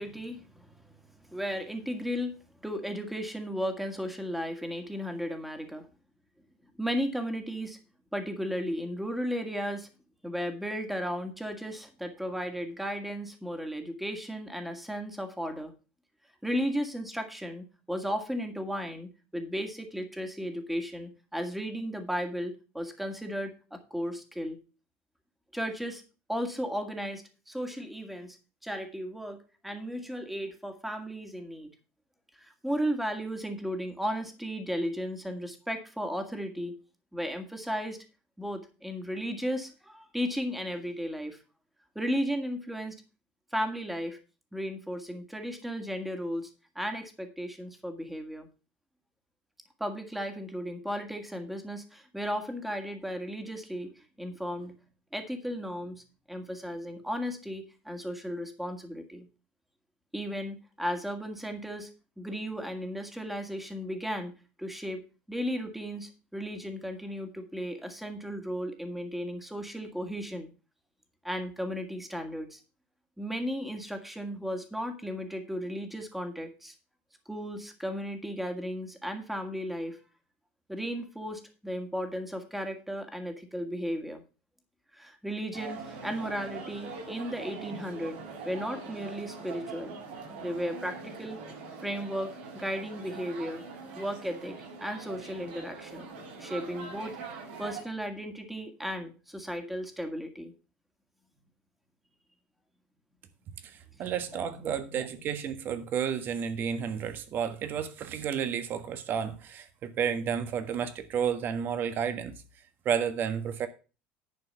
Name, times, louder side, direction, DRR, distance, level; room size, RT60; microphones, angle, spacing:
voice 1, 0.0-2.4 2.6-5.9 6.8-7.8 8.1-9.9 10.2-15.7 16.4-24.6 25.5-26.0 26.3-28.4 28.6-31.7 32.4-36.7 37.1-38.0 38.4-41.4 42.0-43.0 43.5-44.2 44.5-46.5 46.8-48.5 49.8-54.7 55.1-59.3 60.1-61.9 62.2-64.3 64.6-65.0 65.3-70.5 71.2-72.6 73.2-76.7 77.3-80.0 80.7-84.2 84.9-89.9 90.4-91.4 91.8-93.6 94.0-96.1 96.4-97.2 97.6-100.5 103.9-104.0 104.3-105.1, equal, 5° right, 1.9 m, -35 dB
sound 1, 85.5-97.8, right 4 dB, 85° right, 5.3 m, -43 dB
voice 2, 103.6-112.3 112.8-113.7, right 8 dB, 45° right, 1.5 m, -31 dB
11.0 x 4.6 x 6.9 m
supercardioid pair, 120°, 5 cm